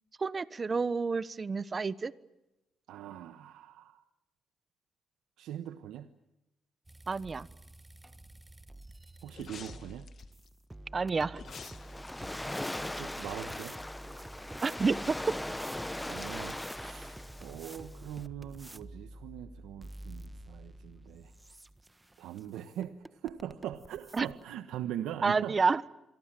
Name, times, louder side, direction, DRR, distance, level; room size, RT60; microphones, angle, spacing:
voice 1, 0.2-2.1 7.1-7.5 10.9-11.4 14.6-15.3 24.1-24.3 25.2-25.9, right 4 dB, 35° right, 16 dB, 1.1 m, -29 dB
voice 2, 2.9-4.0 5.4-6.1 9.2-10.1 13.0-13.8 16.1-21.3 22.2-25.6, right 11 dB, 85° right, 9 dB, 1.2 m, -41 dB
sound 1, 6.9-24.4, right 1 dB, 15° right, 1.4 m, -49 dB
sound 2, 9.3-10.5 11.3-13.8 14.1-14.2, left 7 dB, 55° left, 1.8 m, -51 dB
Waves surf, 11.5-18.3, left 1 dB, 10° left, 1.0 m, -40 dB
28.0 x 23.5 x 7.6 m, 0.95 s
cardioid pair, 90°, 0 cm